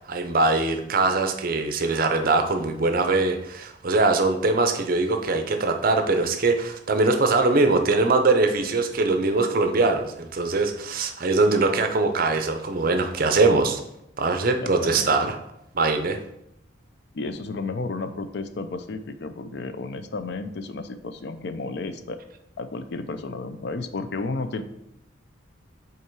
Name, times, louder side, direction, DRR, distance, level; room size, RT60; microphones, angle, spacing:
voice 1, 0.1-13.8 14.2-15.3 15.7-16.2, right 3 dB, 45° right, 6 dB, 0.6 m, -22 dB
voice 2, 14.6-15.2 17.1-22.2 22.6-24.6, left 3 dB, 60° left, 10 dB, 0.4 m, -32 dB
5.4 x 3.8 x 4.6 m, 0.81 s
head